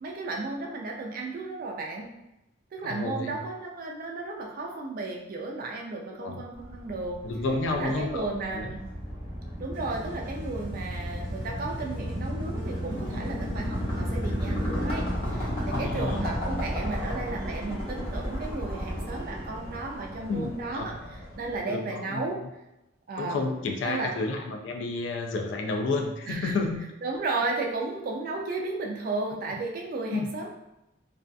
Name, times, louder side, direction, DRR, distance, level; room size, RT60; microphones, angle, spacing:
voice 1, 0.0-2.1 2.7-7.2 7.7-8.8 9.6-22.4 23.1-23.4 23.8-24.1 26.3-26.6 27.0-30.5, right 3 dB, 50° right, 0 dB, 0.3 m, -34 dB
voice 2, 2.8-3.4 6.2-6.4 7.2-8.3 8.5-8.7 15.7-16.3 20.3-20.9 21.7-22.5 23.2-26.9 30.1-30.3, left 3 dB, 70° left, 3 dB, 0.3 m, -31 dB
sound 1, 6.5-21.6, equal, 30° left, 0.7 m, -33 dB
sound 2, 9.7-17.4, right 1 dB, 75° right, 0.7 m, -51 dB
2.6 x 2.3 x 2.2 m, 0.92 s
head